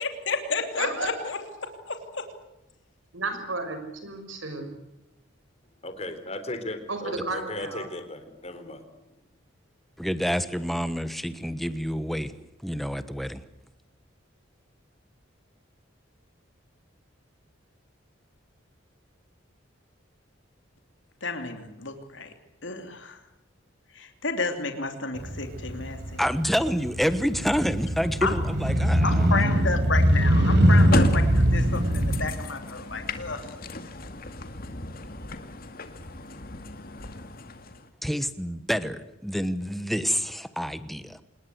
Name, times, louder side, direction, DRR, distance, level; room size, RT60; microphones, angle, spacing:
voice 1, 0.0-1.4 1.9-2.2 21.2-22.3 22.6-23.2 23.9-26.2 28.2-28.3 29.0-33.4, left 4 dB, 70° left, 6 dB, 3.1 m, -31 dB
voice 2, 0.8-1.8 3.1-4.8 6.9-7.9, right 3 dB, 85° right, 7 dB, 5.9 m, -33 dB
voice 3, 5.8-8.8, left 1 dB, 35° left, 9 dB, 3.7 m, -36 dB
voice 4, 10.0-12.3 12.6-13.4 26.2-29.3 38.0-41.2, equal, ahead, 12 dB, 1.2 m, -28 dB
Motorcycle, 25.2-32.3, equal, 65° right, 4.4 m, -22 dB
sound 1, 30.7-37.9, left 2 dB, 50° left, 2.2 m, -34 dB
27.0 x 20.0 x 8.1 m, 0.90 s
head